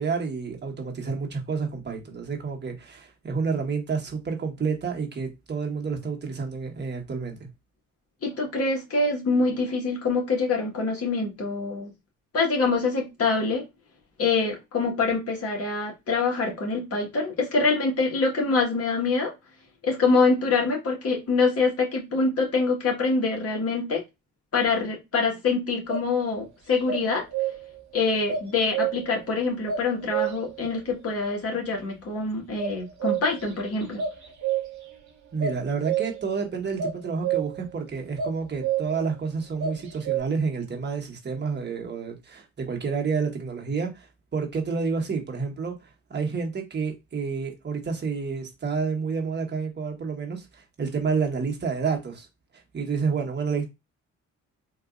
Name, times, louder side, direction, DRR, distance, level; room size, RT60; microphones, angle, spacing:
voice 1, 0.0-7.5 35.3-45.8 46.1-52.3 52.7-53.7, right 5 dB, 35° right, 1.2 m, -29 dB
voice 2, 8.2-11.9 12.3-13.6 14.2-19.3 19.8-24.0 24.5-27.2 27.9-34.0, left 4 dB, 50° left, 1.7 m, -25 dB
sound 1, 25.9-26.1 26.9-27.8 28.3-29.2 29.7-30.6 32.6-33.5 33.8-34.9 35.4-36.3 36.8-37.7 38.2-39.1 39.6-40.2, right 9 dB, 65° right, 1.2 m, -29 dB
3.8 x 2.6 x 2.5 m
cardioid pair, 90°, 30 cm